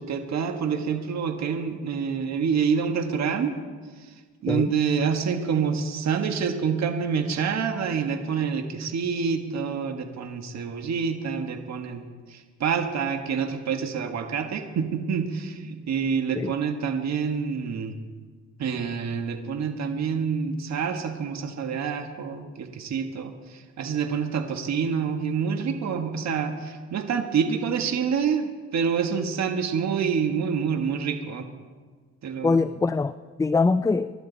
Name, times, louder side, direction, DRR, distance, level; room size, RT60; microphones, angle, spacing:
voice 1, 0.0-3.5 4.0-4.1 4.4-12.0 12.3-17.9 18.6-31.5 32.2-32.6, right 6 dB, 60° right, 5 dB, 1.7 m, -27 dB
voice 2, 32.4-34.1, left 4 dB, 10° left, 13 dB, 0.3 m, -23 dB
25.5 x 12.0 x 4.1 m, 1.5 s
cardioid pair, 90°, 30 cm